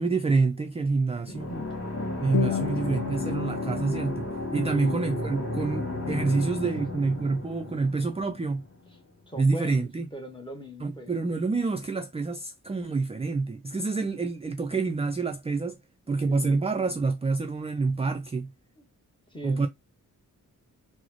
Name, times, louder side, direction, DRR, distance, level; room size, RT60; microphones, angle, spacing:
voice 1, 0.0-1.5 2.2-8.6 9.4-10.1 10.8-15.8 16.1-18.5 19.4-19.7, right 3 dB, 20° right, 0.3 m, -27 dB
sound 1, 1.3-8.9, left 2 dB, 40° left, 2.0 m, -34 dB
voice 2, 1.3-1.8 2.5-3.1 4.7-5.1 6.2-7.0 9.3-11.1 16.3-16.6 19.3-19.7, equal, 15° left, 1.0 m, -41 dB
sound 2, 2.3-7.3, left 15 dB, 65° left, 0.5 m, -36 dB
3.8 x 2.0 x 2.9 m
wide cardioid pair, 100°, 34 cm